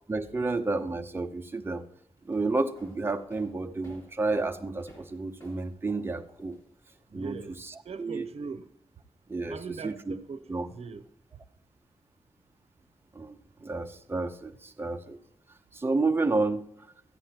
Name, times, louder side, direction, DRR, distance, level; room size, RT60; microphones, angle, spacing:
voice 1, 0.1-1.9 2.2-6.6 7.1-8.3 9.3-10.1 10.5-10.7 13.1-15.2 15.7-16.6, right 3 dB, 20° right, 0.6 m, -31 dB
sound 1, 2.2-7.0, right 1 dB, 25° left, 4.5 m, -54 dB
voice 2, 7.1-7.6 7.8-8.6 9.5-11.0, right 5 dB, 75° right, 0.7 m, -40 dB
14.0 x 9.3 x 2.9 m
wide cardioid pair, 130°, 11 cm